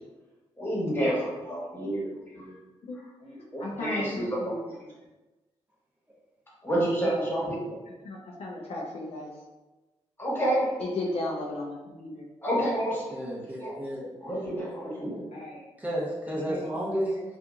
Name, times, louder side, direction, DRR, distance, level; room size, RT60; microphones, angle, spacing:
voice 1, 0.6-2.5 3.2-4.5 6.6-7.8 10.2-10.6 12.4-13.0 13.6-13.7 14.2-15.3, right 1 dB, 20° left, -6 dB, 1.3 m, -29 dB
voice 2, 3.6-4.6 7.0-7.1 8.0-9.3 10.8-12.3 15.3-15.6 16.3-17.2, left 2 dB, 60° left, -3 dB, 0.5 m, -35 dB
voice 3, 13.1-14.1 15.8-17.1, equal, 15° right, -6 dB, 0.8 m, -32 dB
2.8 x 2.4 x 2.3 m, 1.1 s
supercardioid pair, 55°, 12 cm